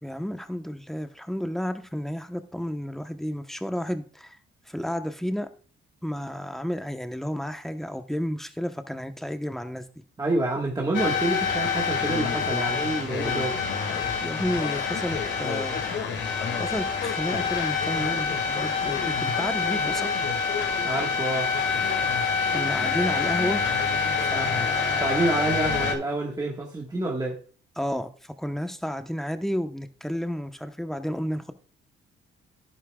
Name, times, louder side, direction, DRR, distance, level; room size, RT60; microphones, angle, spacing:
voice 1, 0.0-4.4 4.7-5.5 6.0-9.8 14.2-15.8 16.6-20.1 22.5-23.6 24.3-25.4 27.8-31.5, equal, ahead, 1.0 m, -31 dB
voice 2, 10.2-13.6 20.8-21.5 25.0-27.4, right 2 dB, 20° right, 1.5 m, -27 dB
sound 1, 10.9-25.9, left 5 dB, 70° left, 2.2 m, -26 dB
11.0 x 9.9 x 2.3 m
cardioid pair, 90°, 20 cm